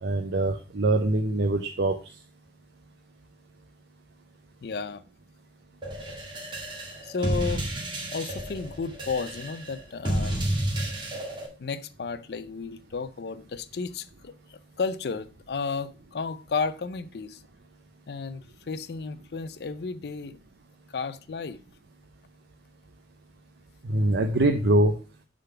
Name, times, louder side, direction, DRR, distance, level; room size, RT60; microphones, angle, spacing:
voice 1, 0.0-2.0 23.8-24.9, right 2 dB, 80° right, 0.6 m, -23 dB
voice 2, 4.6-5.0 7.0-7.7 8.1-10.4 11.6-17.4 18.1-20.4 20.9-21.6, left 4 dB, 60° left, 0.4 m, -33 dB
sound 1, 5.8-11.5, right 1 dB, 25° right, 1.8 m, -31 dB
6.7 x 3.9 x 5.6 m
head